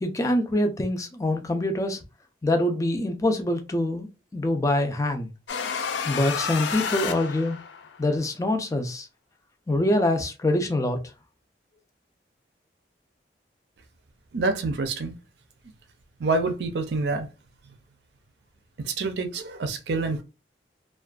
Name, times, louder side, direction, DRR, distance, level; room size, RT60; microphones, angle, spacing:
voice 1, 0.0-2.0 2.4-5.3 6.1-7.6 8.0-9.1 9.7-11.0, left 1 dB, 20° left, 0.4 m, -25 dB
sound 1, 5.5-8.0, left 6 dB, 90° left, 0.4 m, -30 dB
voice 2, 14.3-15.2 16.2-17.3 18.8-20.2, right 3 dB, 70° right, 0.5 m, -27 dB
2.5 x 2.2 x 2.3 m
head